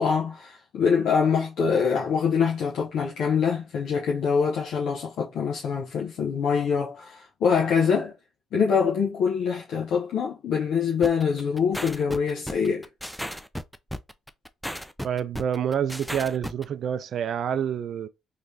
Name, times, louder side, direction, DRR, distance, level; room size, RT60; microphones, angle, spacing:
voice 1, 0.0-8.1 8.5-12.9, left 6 dB, 70° left, 0.8 m, -24 dB
sound 1, 11.0-16.6, equal, ahead, 0.4 m, -34 dB
voice 2, 15.0-18.1, right 8 dB, 60° right, 0.4 m, -27 dB
3.1 x 3.0 x 2.7 m
supercardioid pair, 60°, 0 cm